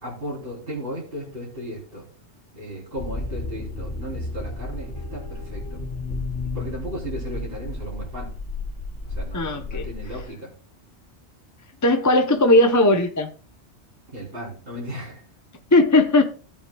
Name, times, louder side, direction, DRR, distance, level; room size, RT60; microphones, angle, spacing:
voice 1, 0.0-2.1 2.5-5.8 6.5-8.3 9.0-10.5 14.1-15.2, equal, 55° right, -5 dB, 3.7 m, -35 dB
sound 1, 2.9-10.2, left 2 dB, 85° left, 2.4 m, -32 dB
voice 2, 9.3-9.8 11.8-13.3 15.7-16.2, left 1 dB, 20° left, 5 dB, 0.7 m, -17 dB
17.5 x 7.2 x 2.3 m, 0.39 s
omnidirectional pair, 1.2 m